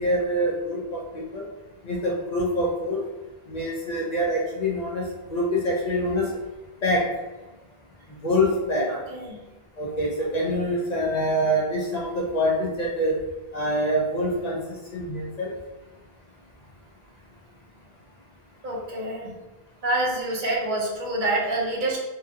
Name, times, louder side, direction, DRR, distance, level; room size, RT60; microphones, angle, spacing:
voice 1, 0.0-1.4 1.8-3.0 3.5-6.3 6.8-7.1 8.2-8.9 9.8-13.2 13.5-14.6 14.9-15.5, equal, 50° left, -3 dB, 0.5 m, -25 dB
voice 2, 8.9-9.4 18.6-19.3 19.8-22.0, right 2 dB, 55° right, -2 dB, 0.7 m, -27 dB
2.7 x 2.3 x 2.5 m, 1.1 s
omnidirectional pair, 1.1 m